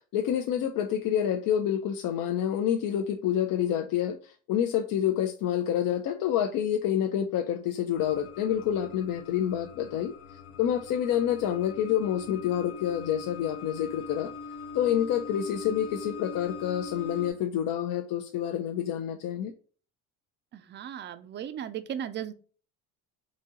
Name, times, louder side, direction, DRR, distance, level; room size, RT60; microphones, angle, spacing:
voice 1, 0.1-10.1 10.6-14.3 14.7-19.5, left 10 dB, 55° left, 5 dB, 0.5 m, -28 dB
sound 1, 7.9-17.3, left 4 dB, 75° left, 0.9 m, -43 dB
voice 2, 20.5-22.3, right 9 dB, 30° right, 11 dB, 0.4 m, -36 dB
4.1 x 2.7 x 3.8 m, 0.39 s
cardioid pair, 110°, 40 cm